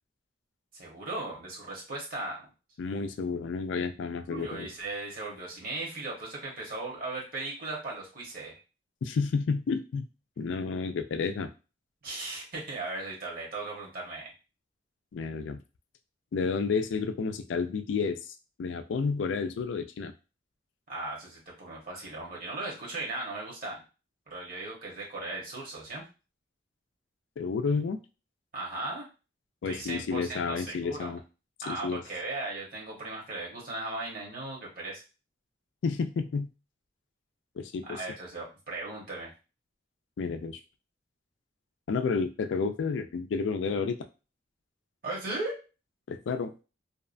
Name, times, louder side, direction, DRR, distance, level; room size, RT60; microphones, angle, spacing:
voice 1, 0.7-2.5 4.3-8.6 12.0-14.3 20.9-23.8 24.3-26.0 28.5-29.1 29.6-31.1 31.6-35.0 37.8-39.3 45.0-45.6, right 2 dB, 50° right, -3 dB, 1.0 m, -37 dB
voice 2, 2.8-4.7 9.0-10.0 10.4-11.5 15.1-15.6 16.3-20.1 27.4-28.0 29.6-31.2 31.7-32.0 35.8-36.5 37.6-38.0 40.2-40.6 41.9-44.0 46.1-46.5, left 5 dB, 75° left, 9 dB, 0.3 m, -31 dB
2.7 x 2.1 x 2.5 m, 0.31 s
head